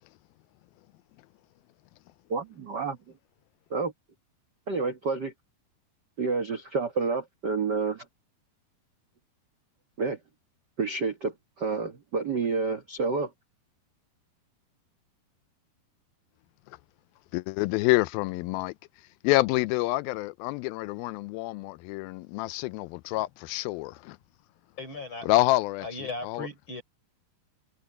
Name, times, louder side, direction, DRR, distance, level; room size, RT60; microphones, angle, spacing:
voice 1, 2.3-3.0 3.7-3.9 4.7-5.3 6.2-8.0 10.0-10.2 10.8-13.3, right 4 dB, 85° right, 0.9 m, -29 dB
voice 2, 17.3-18.7 19.2-24.2 25.2-26.5, left 19 dB, 85° left, 2.4 m, -27 dB
voice 3, 24.8-25.3 25.8-26.8, left 2 dB, 35° left, 5.2 m, -37 dB
omnidirectional pair, 4.2 m